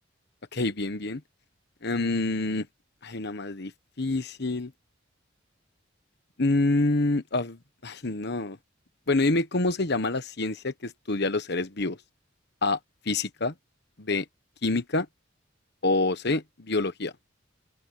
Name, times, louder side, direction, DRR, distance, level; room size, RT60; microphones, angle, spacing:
voice 1, 0.5-1.2 1.8-2.7 3.0-3.7 4.0-4.7 6.4-8.6 9.1-12.0 12.6-12.8 13.0-13.5 14.0-14.2 14.6-15.1 15.8-17.1, left 2 dB, 55° left, 1.3 m, -27 dB
open air
head